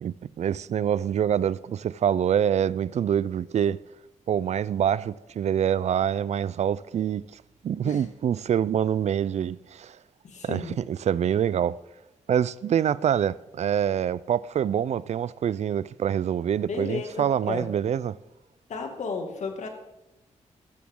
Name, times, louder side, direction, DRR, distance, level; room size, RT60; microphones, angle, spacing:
voice 1, 0.0-3.8 4.3-10.0 10.4-11.8 12.3-18.2, right 9 dB, 60° right, 0.4 m, -26 dB
voice 2, 10.2-10.8 16.7-17.7 18.7-19.7, left 4 dB, 70° left, 2.2 m, -33 dB
14.5 x 12.0 x 3.7 m
wide cardioid pair, 105°, 13 cm